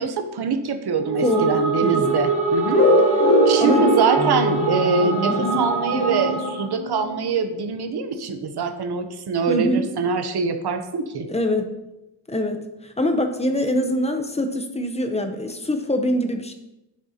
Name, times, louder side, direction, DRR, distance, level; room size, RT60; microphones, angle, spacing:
voice 1, 0.0-2.8 3.5-11.3, right 5 dB, 55° right, 7 dB, 0.9 m, -24 dB
sound 1, 0.9-6.7, right 4 dB, 70° right, 2.9 m, -24 dB
voice 2, 1.2-1.5 1.8-2.0 3.6-3.9 5.3-5.7 9.5-9.9 11.3-11.7 12.3-16.5, left 1 dB, 15° left, 6 dB, 0.8 m, -24 dB
Wind instrument woodwind instrument, 2.0-6.5, right 4 dB, 15° right, 0.4 m, -33 dB
sound 2, 2.7-7.3, left 1 dB, 30° left, 1.5 m, -22 dB
10.5 x 7.5 x 2.9 m, 0.92 s
wide cardioid pair, 145°, 47 cm